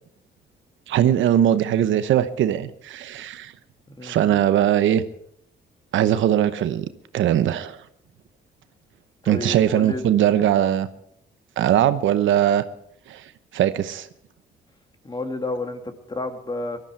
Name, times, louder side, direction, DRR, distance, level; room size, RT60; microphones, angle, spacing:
voice 1, 0.9-3.5 4.0-5.0 5.9-6.8 7.1-7.8 9.3-10.9 11.6-12.6 13.1-13.2 13.5-14.1, right 11 dB, 75° right, 12 dB, 0.9 m, -20 dB
voice 2, 4.0-4.4 9.2-10.1 15.0-16.8, left 2 dB, 20° left, 6 dB, 2.2 m, -31 dB
19.0 x 13.0 x 4.6 m, 0.68 s
cardioid pair, 90°, 20 cm